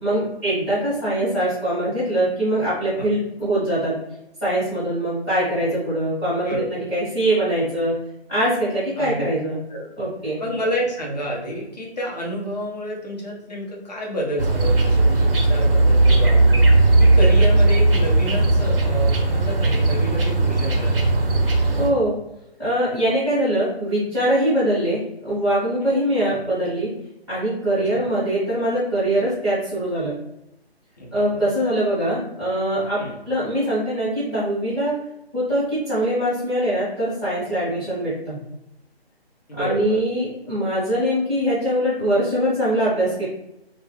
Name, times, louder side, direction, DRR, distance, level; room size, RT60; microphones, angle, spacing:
voice 1, 0.0-3.9 4.4-6.6 6.9-7.9 8.3-9.6 10.0-10.4 21.8-22.1 22.6-26.9 27.3-30.1 31.1-33.0 33.2-34.9 35.3-38.4 39.6-43.2, right 1 dB, 5° left, -13 dB, 0.7 m, -22 dB
voice 2, 10.4-21.1 27.8-28.1 31.0-31.4 33.0-33.2 39.5-40.0, equal, 40° left, -3 dB, 0.8 m, -29 dB
sound 1, 14.4-21.9, right 2 dB, 60° right, 0.6 m, -17 dB
2.4 x 2.2 x 3.1 m, 0.84 s
figure-of-eight pair, 155°, 32 cm